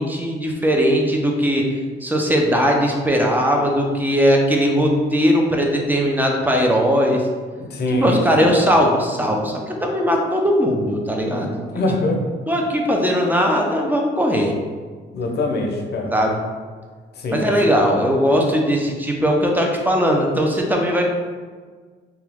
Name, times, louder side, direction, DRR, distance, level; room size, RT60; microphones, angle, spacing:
voice 1, 0.0-1.6 2.0-7.2 7.9-11.6 12.5-14.5 16.1-16.4 17.3-21.0, equal, 10° right, 1 dB, 0.5 m, -19 dB
voice 2, 7.7-8.5 11.7-12.2 15.1-16.1 17.2-17.5, left 1 dB, 55° left, 2 dB, 0.6 m, -23 dB
2.9 x 2.3 x 3.4 m, 1.5 s
cardioid pair, 90°, 20 cm